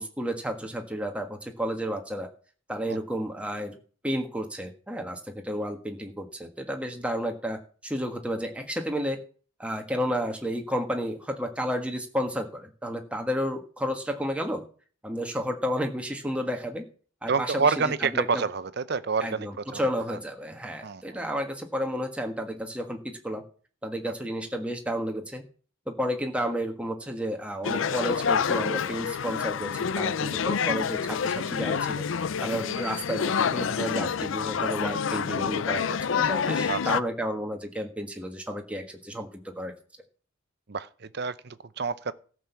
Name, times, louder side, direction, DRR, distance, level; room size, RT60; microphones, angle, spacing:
voice 1, 0.0-2.3 2.7-3.8 4.0-9.2 9.6-14.6 15.0-16.8 17.2-18.4 19.2-23.4 23.8-25.4 25.9-32.0 32.4-39.7, equal, 5° right, 1.4 m, -32 dB
voice 2, 17.3-19.8 20.1-20.2 20.8-21.0 36.7-36.8 40.7-42.1, right 5 dB, 50° right, 0.6 m, -28 dB
sound 1, 27.6-37.0, left 6 dB, 70° left, 0.5 m, -28 dB
14.0 x 6.2 x 6.9 m
head